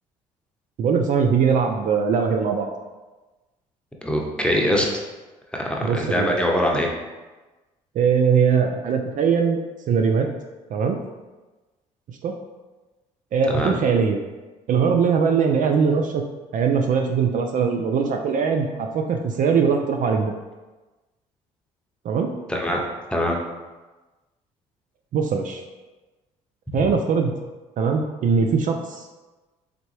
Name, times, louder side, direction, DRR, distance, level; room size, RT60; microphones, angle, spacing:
voice 1, 0.8-2.7 5.8-6.3 8.0-9.6 9.9-10.3 10.7-11.0 12.1-12.3 13.3-14.2 14.7-16.2 16.5-20.3 22.0-22.3 25.1-25.6 26.7-27.3 27.8-29.1, right 6 dB, 50° right, 4 dB, 0.4 m, -21 dB
voice 2, 4.0-4.9 5.5-6.9 13.5-13.8 22.5-22.8 23.1-23.4 26.7-26.8, equal, 5° left, -1 dB, 0.9 m, -23 dB
3.7 x 3.4 x 3.2 m, 1.2 s
hypercardioid pair, 60°, 17 cm